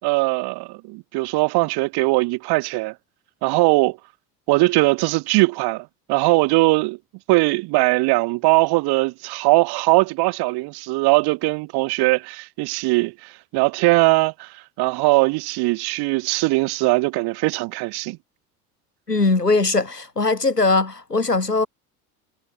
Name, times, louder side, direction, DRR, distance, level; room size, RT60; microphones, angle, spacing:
voice 1, 0.0-2.9 3.4-4.0 4.5-7.0 7.3-18.2, right 24 dB, 55° right, 3.2 m, -20 dB
voice 2, 19.1-21.7, left 3 dB, 90° left, 2.7 m, -20 dB
figure-of-eight pair, 60°, 46 cm